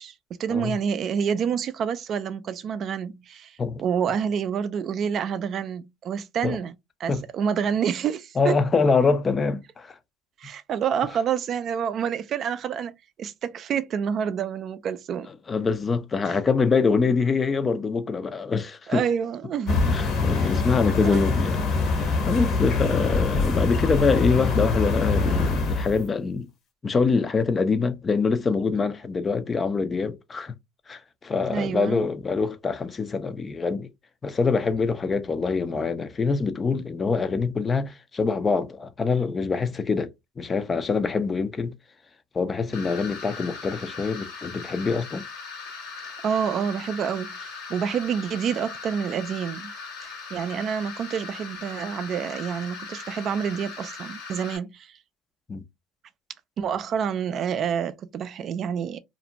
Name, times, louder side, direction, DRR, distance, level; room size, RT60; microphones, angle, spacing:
voice 1, 0.0-6.7 7.0-8.5 10.4-12.9 13.2-15.3 16.3-16.4 18.9-20.0 20.4-20.5 21.0-21.2 31.5-32.1 46.2-49.7 50.0-55.0 56.6-59.0, right 7 dB, 50° right, 0.3 m, -28 dB
voice 2, 8.4-9.9 15.5-19.0 19.9-26.5 26.8-30.5 30.9-33.9 34.2-40.1 40.4-41.7 42.3-45.2 55.5-55.6, left 4 dB, 25° left, 0.4 m, -25 dB
sound 1, 19.7-26.0, left 3 dB, 55° left, 0.9 m, -24 dB
sound 2, 42.7-54.6, left 5 dB, 75° left, 1.3 m, -39 dB
2.5 x 2.1 x 2.8 m
supercardioid pair, 95°, 0 cm